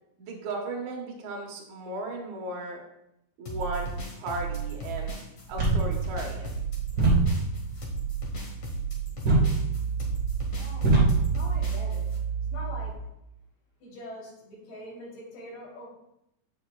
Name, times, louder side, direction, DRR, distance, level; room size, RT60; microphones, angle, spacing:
voice 1, 0.2-2.8 3.4-5.1 5.5-6.6, right 2 dB, 80° right, 0 dB, 1.6 m, -36 dB
sound 1, 3.5-12.2, right 5 dB, 90° left, 1.3 m, -34 dB
sound 2, 5.5-12.9, right 3 dB, 30° right, 2.9 m, -26 dB
voice 2, 10.5-11.0 11.3-12.1 12.4-12.9 13.8-15.9, left 1 dB, 70° left, -5 dB, 5.2 m, -43 dB
9.6 x 8.5 x 2.3 m, 0.83 s
omnidirectional pair, 5.3 m